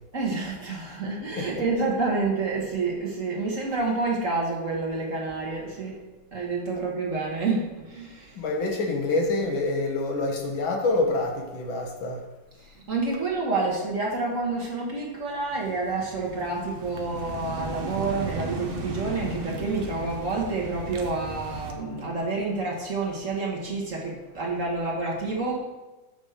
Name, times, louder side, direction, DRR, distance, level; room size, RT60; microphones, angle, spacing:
voice 1, 0.1-6.0 6.3-8.4 12.6-25.6, right 3 dB, 45° right, -2 dB, 1.5 m, -28 dB
voice 2, 8.4-12.2, left 2 dB, 80° left, 1 dB, 2.0 m, -26 dB
sound 1, 15.5-21.7, right 3 dB, 60° right, 0.5 m, -36 dB
5.6 x 5.3 x 6.4 m, 1.1 s
omnidirectional pair, 2.1 m